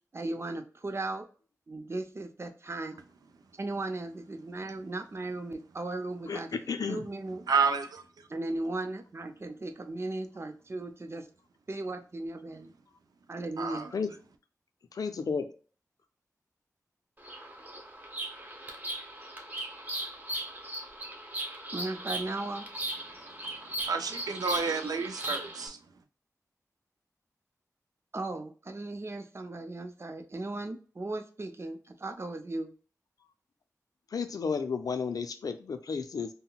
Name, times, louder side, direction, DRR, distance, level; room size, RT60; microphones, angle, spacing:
voice 1, 0.1-1.3 1.7-3.0 3.6-6.6 6.9-7.4 8.3-11.3 11.7-12.7 13.3-13.9 21.7-22.7 28.1-32.7, right 2 dB, 45° right, 0.6 m, -37 dB
voice 2, 6.3-7.0 13.9-14.1 14.9-15.5 34.1-36.3, left 5 dB, 75° left, 0.4 m, -32 dB
voice 3, 7.5-8.0 13.6-13.9 23.9-25.8, right 5 dB, 90° right, 0.4 m, -29 dB
Bird vocalization bird call bird song, 17.2-25.7, right 1 dB, 25° right, 0.9 m, -38 dB
3.8 x 2.1 x 2.3 m
cardioid pair, 50°, 6 cm